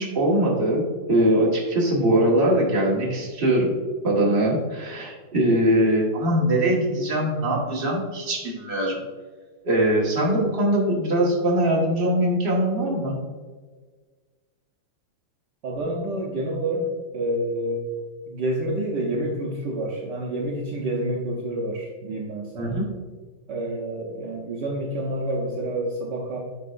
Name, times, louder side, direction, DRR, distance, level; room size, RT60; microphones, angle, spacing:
voice 1, 0.0-3.7 4.0-9.0 9.6-13.2 22.6-22.8, right 1 dB, 30° right, -3 dB, 1.6 m, -22 dB
voice 2, 15.6-16.9 17.1-17.9 18.3-22.8 23.5-26.4, right 1 dB, 65° right, -2 dB, 1.5 m, -28 dB
11.0 x 4.7 x 2.5 m, 1.4 s
omnidirectional pair, 2.2 m